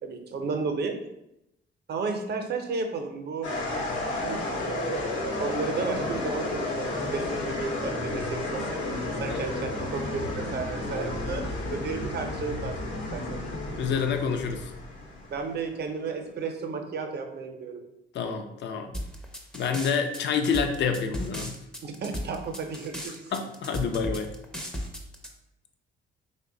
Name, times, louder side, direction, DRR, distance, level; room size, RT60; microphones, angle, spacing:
voice 1, 0.0-1.0 1.9-3.5 4.1-13.4 15.3-17.8 21.8-23.3, right 4 dB, 55° right, 5 dB, 0.6 m, -33 dB
sound 1, 3.4-15.7, left 2 dB, 85° left, 0.9 m, -32 dB
voice 2, 13.7-14.7 18.1-18.9 19.5-21.5 23.3-24.3, left 6 dB, 65° left, 6 dB, 0.5 m, -28 dB
sound 2, 18.9-25.3, equal, 5° left, 0.5 m, -35 dB
3.3 x 2.1 x 3.7 m, 0.86 s
cardioid pair, 90°, 20 cm